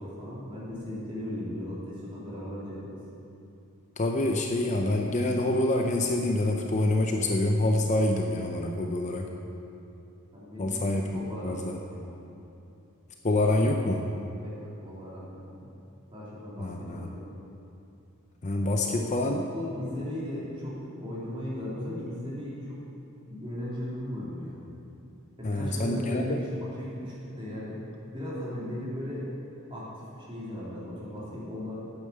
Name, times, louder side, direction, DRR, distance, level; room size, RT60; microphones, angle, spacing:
voice 1, 0.0-3.0 10.3-12.2 14.4-15.7 16.1-17.4 18.6-19.1 19.5-22.8 23.3-24.6 25.4-27.8 28.1-29.3 29.7-31.8, left 1 dB, 25° right, -7 dB, 3.2 m, -37 dB
voice 2, 4.0-9.3 10.6-11.8 13.2-14.0 16.6-17.1 18.4-19.4 25.4-26.4, left 1 dB, 35° left, 2 dB, 0.6 m, -26 dB
9.9 x 8.9 x 6.9 m, 2.8 s
head